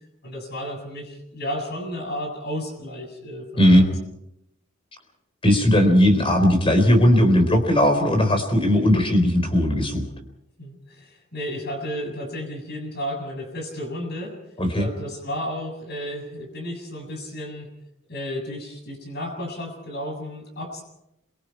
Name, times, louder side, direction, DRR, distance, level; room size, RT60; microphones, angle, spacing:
voice 1, 0.2-3.9 10.6-14.4 14.8-17.7 18.1-20.8, equal, 45° left, 4 dB, 7.4 m, -33 dB
voice 2, 3.6-3.9 5.4-10.0 14.6-14.9, equal, 25° left, 6 dB, 4.1 m, -18 dB
27.5 x 24.0 x 4.7 m, 0.81 s
head